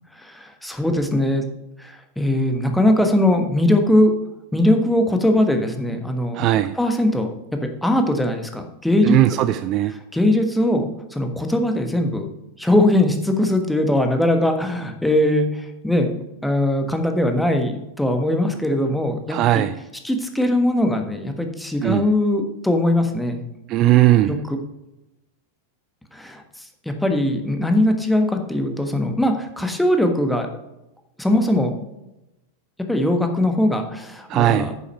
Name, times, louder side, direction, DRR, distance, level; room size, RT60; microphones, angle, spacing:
voice 1, 0.2-1.5 1.8-4.1 4.5-6.4 6.8-9.2 10.1-12.3 12.6-16.1 16.4-19.6 20.0-23.4 24.2-24.6 26.1-30.5 31.2-31.7 32.9-34.7, left 1 dB, 5° left, 5 dB, 1.4 m, -20 dB
voice 2, 6.3-6.7 9.0-9.9 19.3-19.8 21.8-22.0 23.7-24.3 34.3-34.7, right 14 dB, 35° right, 11 dB, 0.4 m, -18 dB
9.5 x 7.1 x 4.5 m, 0.93 s
figure-of-eight pair, 90°, 0 cm